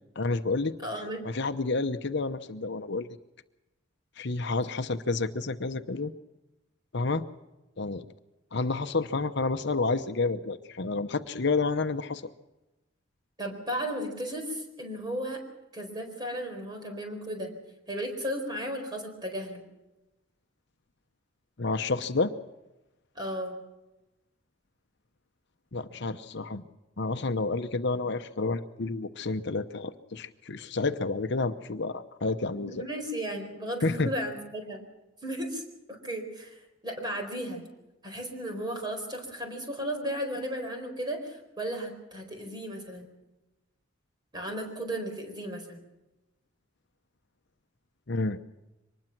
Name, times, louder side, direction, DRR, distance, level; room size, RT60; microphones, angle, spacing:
voice 1, 0.2-0.8 1.2-3.1 4.2-6.1 6.9-7.3 7.8-8.0 8.5-12.2 21.6-22.3 25.7-26.6 27.0-32.8 33.8-34.1 48.1-48.4, left 3 dB, 60° left, 9 dB, 0.9 m, -29 dB
voice 2, 0.8-1.2 13.4-15.4 15.7-17.5 17.9-19.6 23.1-23.6 32.5-34.8 35.2-35.6 35.9-37.6 38.0-43.1 44.3-45.8, equal, 20° right, 3 dB, 4.4 m, -35 dB
24.0 x 20.0 x 6.0 m, 0.98 s
head